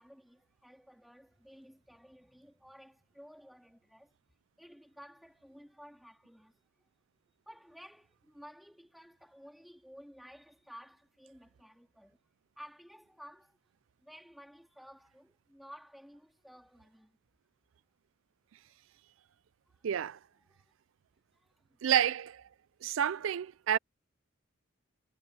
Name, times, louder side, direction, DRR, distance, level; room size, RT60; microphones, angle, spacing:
voice 1, 0.0-6.9 7.4-12.2 12.5-13.6 14.0-17.2 19.6-19.9 20.4-20.7 21.3-21.8, equal, ahead, 3.2 m, -55 dB
voice 2, 19.8-20.2 21.8-22.5 22.8-23.8, right 9 dB, 70° right, 0.4 m, -29 dB
head